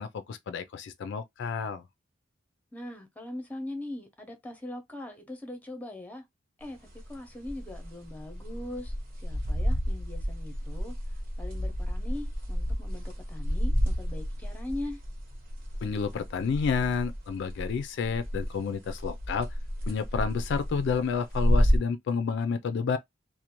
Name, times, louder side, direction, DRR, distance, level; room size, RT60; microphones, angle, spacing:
voice 1, 0.0-1.8 15.8-19.5 19.9-23.0, left 5 dB, 65° left, 0.3 m, -30 dB
voice 2, 2.7-6.2 6.6-6.8 7.1-10.9 11.4-15.0, left 1 dB, 10° left, 0.6 m, -41 dB
sound 1, 6.7-17.8 18.1-18.6 18.9-21.8, equal, 50° right, 0.9 m, -30 dB
2.5 x 2.1 x 2.8 m
head